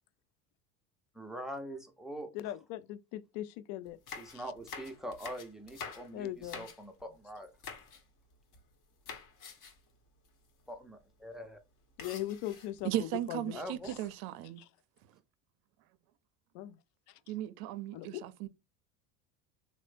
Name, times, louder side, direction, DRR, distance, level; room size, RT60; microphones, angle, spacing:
voice 1, 1.1-2.6 4.2-7.5 10.7-11.6 13.5-14.0, equal, ahead, 0.4 m, -43 dB
voice 2, 2.3-4.0 6.1-6.7 12.0-13.9 14.6-14.7 16.5-16.8 17.9-18.2, left 13 dB, 70° left, 0.5 m, -40 dB
sound 1, 3.9-7.1 7.6-8.0 8.3-8.7 9.1-9.9 10.2-10.3 10.6-10.8 12.0-12.9 13.6-14.1, left 5 dB, 50° left, 0.9 m, -47 dB
voice 3, 12.8-14.6 17.3-18.5, right 13 dB, 60° right, 0.5 m, -36 dB
3.1 x 2.0 x 3.2 m
supercardioid pair, 95°, 42 cm